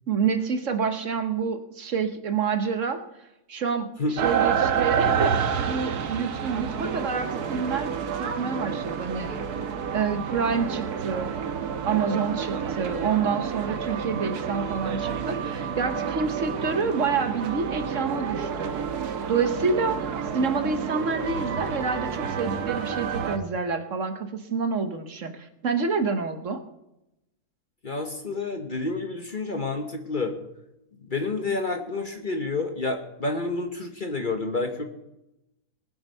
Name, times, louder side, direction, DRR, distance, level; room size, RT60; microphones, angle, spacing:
voice 1, 0.1-3.0 3.5-7.9 8.2-9.3 9.9-11.3 11.9-18.7 19.3-20.0 20.3-26.6, right 5 dB, 55° right, 8 dB, 1.3 m, -28 dB
sound 1, 4.2-23.4, right 7 dB, 80° right, 1.5 m, -29 dB
voice 2, 27.8-30.4 31.1-34.8, left 3 dB, 35° left, 5 dB, 1.1 m, -29 dB
19.5 x 7.9 x 5.4 m, 0.89 s
omnidirectional pair, 1.6 m